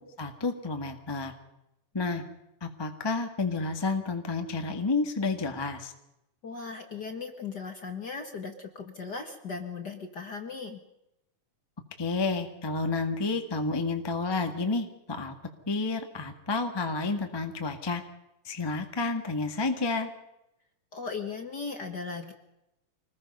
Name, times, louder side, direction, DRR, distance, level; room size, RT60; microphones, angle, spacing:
voice 1, 0.2-1.3 1.9-2.2 2.6-5.9 12.0-15.3 15.7-18.0 18.4-20.1, left 3 dB, 15° left, 5 dB, 1.0 m, -30 dB
voice 2, 6.4-10.8 20.9-22.3, left 4 dB, 40° left, 5 dB, 1.6 m, -37 dB
26.0 x 20.0 x 5.5 m, 0.87 s
omnidirectional pair, 3.8 m